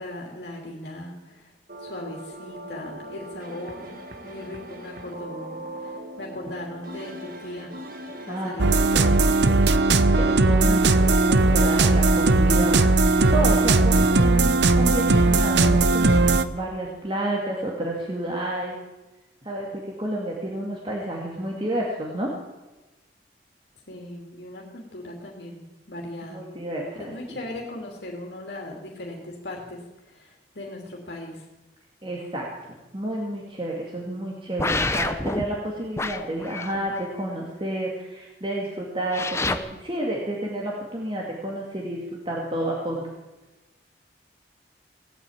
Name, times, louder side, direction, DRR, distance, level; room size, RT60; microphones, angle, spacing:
voice 1, 0.0-1.5 1.8-7.7 8.2-8.8 23.9-26.4 27.0-31.4, left 1 dB, 65° left, -1 dB, 2.9 m, -38 dB
sound 1, 1.7-8.5, right 1 dB, 50° right, 1.7 m, -40 dB
voice 2, 8.3-9.6 10.2-18.8 19.4-22.3 26.3-27.4 32.0-43.0, right 1 dB, 25° right, -2 dB, 2.2 m, -30 dB
sound 2, 8.6-16.4, right 3 dB, 70° right, 0.8 m, -18 dB
sound 3, 34.6-35.4 36.0-37.0 39.1-39.6, left 2 dB, 15° left, 0.8 m, -27 dB
17.5 x 9.1 x 8.8 m, 1.1 s
head